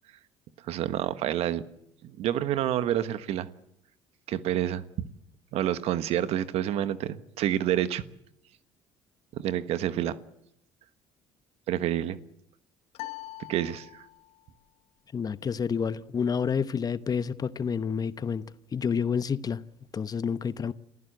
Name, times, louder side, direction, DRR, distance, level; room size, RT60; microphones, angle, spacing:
voice 1, 0.7-1.6 2.0-3.5 4.3-4.8 5.5-8.0 9.3-10.2 11.7-12.2 13.5-14.0, right 11 dB, 70° right, 1.3 m, -28 dB
sound 1, 12.9-14.4, left 16 dB, 70° left, 1.2 m, -42 dB
voice 2, 15.1-18.4 18.7-19.6 19.9-20.7, left 6 dB, 35° left, 1.0 m, -29 dB
27.5 x 15.0 x 8.0 m
supercardioid pair, 85°, 11 cm